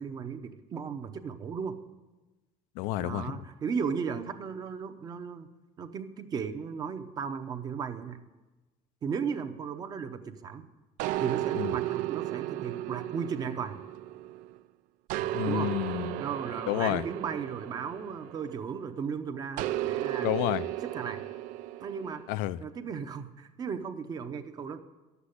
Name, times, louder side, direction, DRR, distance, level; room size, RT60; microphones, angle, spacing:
voice 1, 0.0-1.8 3.0-5.5 5.8-8.2 9.0-10.7 11.2-13.8 15.4-15.7 16.2-20.3 20.8-21.2 21.8-22.2 22.6-24.8, right 6 dB, 25° right, 0.7 m, -36 dB
voice 2, 2.8-3.3 11.6-11.7 15.3-16.2 16.7-17.0 20.2-20.6 22.3-22.6, left 15 dB, 80° left, 0.5 m, -29 dB
sound 1, 11.0-14.6 15.1-18.8 19.6-22.2, right 14 dB, 70° right, 0.4 m, -34 dB
11.5 x 8.2 x 9.9 m
cardioid pair, 175°, 14 cm